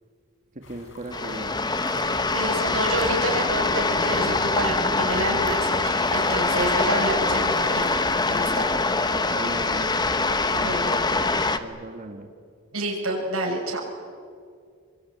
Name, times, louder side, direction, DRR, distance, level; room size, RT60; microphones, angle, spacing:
sound 1, 0.6-10.0, left 3 dB, 65° left, 5.0 m, -46 dB
voice 1, 0.6-1.6 9.3-10.0 10.5-10.9 11.3-12.3, right 2 dB, 35° right, 4 dB, 1.9 m, -37 dB
sound 2, 1.1-11.6, left 3 dB, 20° left, 1.1 m, -24 dB
voice 2, 2.1-8.0 8.3-8.7 10.5-11.0 12.7-13.8, right 1 dB, 80° right, -1 dB, 7.5 m, -29 dB
sound 3, 2.9-4.9 5.4-8.2, left 3 dB, 40° left, 5.1 m, -45 dB
25.5 x 23.5 x 9.4 m, 2.2 s
head